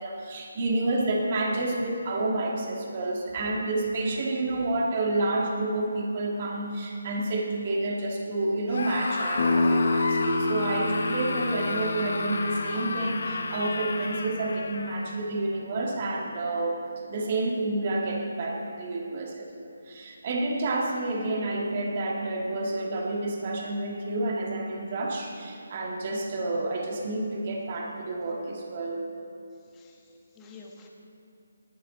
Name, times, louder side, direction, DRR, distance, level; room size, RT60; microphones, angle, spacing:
voice 1, 0.0-16.8 17.1-29.0, right 2 dB, 40° right, -1 dB, 2.1 m, -29 dB
Screaming, 8.7-15.2, left 3 dB, 65° left, 1.1 m, -32 dB
sound 1, 9.4-14.9, left 2 dB, 50° left, 1.5 m, -29 dB
voice 2, 29.7-30.9, left 4 dB, 15° left, -1 dB, 1.5 m, -50 dB
19.0 x 11.5 x 4.0 m, 2.5 s
figure-of-eight pair, 160°, 0 cm